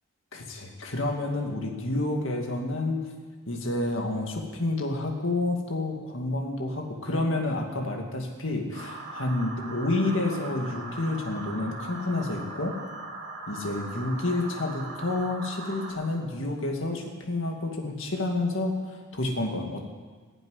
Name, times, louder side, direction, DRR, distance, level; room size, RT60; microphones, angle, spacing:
voice 1, 0.3-3.1 3.5-12.8 13.5-19.9, left 2 dB, 65° left, 2 dB, 2.2 m, -29 dB
sound 1, 8.7-15.9, right 3 dB, 55° right, 4.5 m, -40 dB
15.5 x 7.9 x 9.6 m, 1.5 s
head